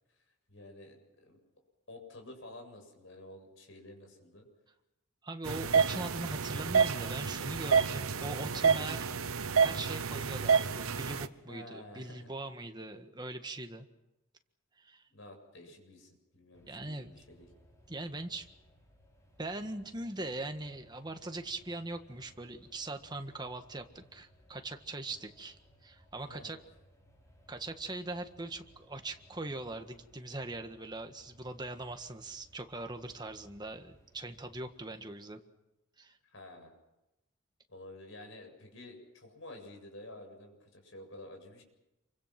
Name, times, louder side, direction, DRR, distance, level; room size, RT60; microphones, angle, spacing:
voice 1, 0.5-1.4 1.9-4.5 8.1-9.0 11.5-12.3 15.1-17.5 26.2-26.5 36.3-36.7 37.7-41.6, left 1 dB, 60° left, 3 dB, 7.6 m, -50 dB
voice 2, 5.2-9.1 9.5-13.9 14.8-15.0 16.7-17.1 17.9-18.5 19.4-26.6 27.5-35.4 36.0-36.2, right 2 dB, 20° right, 6 dB, 1.7 m, -41 dB
sound 1, 5.4-11.3, right 6 dB, 80° right, 1.1 m, -29 dB
sound 2, 16.5-34.7, equal, 15° left, 6.9 m, -63 dB
28.5 x 24.5 x 6.0 m, 0.96 s
head